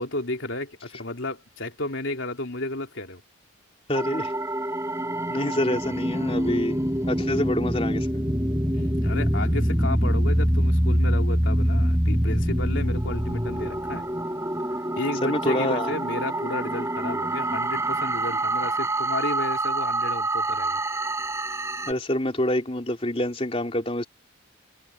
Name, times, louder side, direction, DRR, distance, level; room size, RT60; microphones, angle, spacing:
voice 1, 0.0-3.2 8.7-14.1 15.0-20.8, left 2 dB, 70° left, 3.1 m, -32 dB
voice 2, 3.9-4.3 5.3-6.8 7.1-8.1 15.2-15.9 21.9-24.0, left 1 dB, 30° left, 3.6 m, -26 dB
sound 1, 3.9-21.9, right 1 dB, 15° right, 6.2 m, -25 dB
head